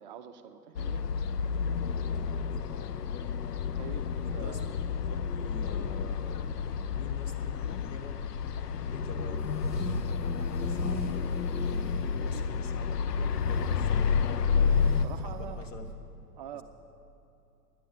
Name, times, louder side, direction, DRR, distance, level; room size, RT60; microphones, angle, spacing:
voice 1, 0.0-1.3 3.7-4.7 14.9-15.7 16.4-16.6, right 9 dB, 30° right, 8 dB, 0.5 m, -45 dB
sound 1, 0.8-15.1, left 6 dB, 70° left, 0.7 m, -30 dB
voice 2, 2.5-3.0 4.4-4.6 5.1-8.1 8.8-14.4 15.2-15.9 16.5-16.6, left 3 dB, 45° left, 6 dB, 1.5 m, -47 dB
sound 2, 9.4-10.1 10.4-12.6 13.0-15.9, left 1 dB, 85° left, 1.6 m, -37 dB
11.5 x 10.0 x 8.8 m, 2.8 s
figure-of-eight pair, 105°, 50 cm